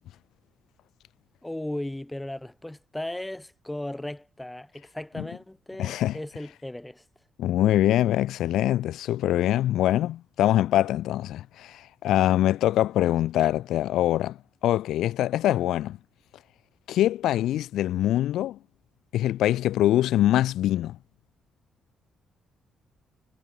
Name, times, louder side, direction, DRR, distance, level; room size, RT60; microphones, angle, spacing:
voice 1, 1.4-7.0, left 1 dB, 10° left, 4.5 m, -36 dB
voice 2, 5.8-6.2 7.4-14.4 14.6-16.0 16.9-18.6 19.1-21.0, left 13 dB, 80° left, 1.9 m, -23 dB
cardioid pair, 90°, 0 cm